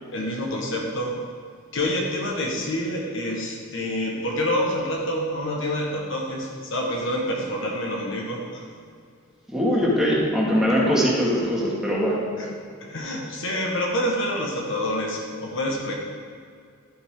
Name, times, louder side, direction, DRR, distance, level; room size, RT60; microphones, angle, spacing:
voice 1, 0.1-1.2 1.7-8.8 12.4-12.5 12.8-15.9, left 1 dB, 65° left, -1 dB, 1.5 m, -27 dB
voice 2, 9.5-12.2, equal, 5° right, -6 dB, 2.1 m, -21 dB
12.0 x 8.0 x 3.8 m, 2.3 s
head